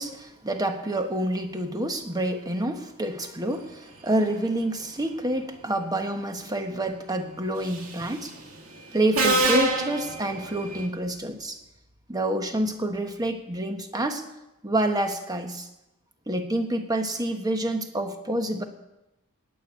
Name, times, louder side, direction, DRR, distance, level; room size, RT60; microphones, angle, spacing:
voice 1, 0.0-8.4 8.9-11.6 12.1-14.2 14.6-15.7 16.3-18.6, right 1 dB, 20° right, 6 dB, 1.3 m, -28 dB
Subway metro underground, 7.7-8.0 9.1-10.8, right 2 dB, 70° right, 2.4 m, -25 dB
19.5 x 7.0 x 8.2 m, 0.92 s
head